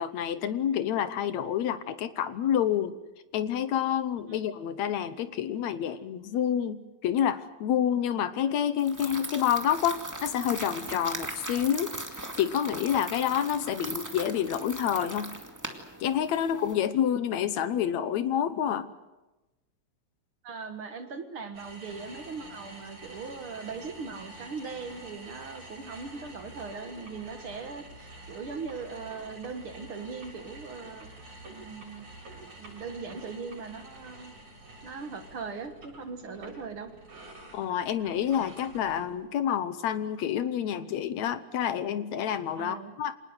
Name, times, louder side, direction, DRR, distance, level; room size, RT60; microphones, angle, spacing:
voice 1, 0.0-3.0 3.3-15.3 16.0-18.9 37.5-43.1, left 9 dB, 70° left, 12 dB, 2.2 m, -28 dB
sound 1, 8.8-16.7, right 1 dB, 5° right, 1.7 m, -39 dB
voice 2, 20.4-31.1 31.5-32.2 32.6-34.3 34.8-36.9 42.6-42.9, right 4 dB, 50° right, 7 dB, 2.0 m, -40 dB
sound 2, 21.5-39.3, right 2 dB, 75° right, 9.1 m, -48 dB
26.5 x 19.5 x 8.0 m, 1.1 s
omnidirectional pair, 3.4 m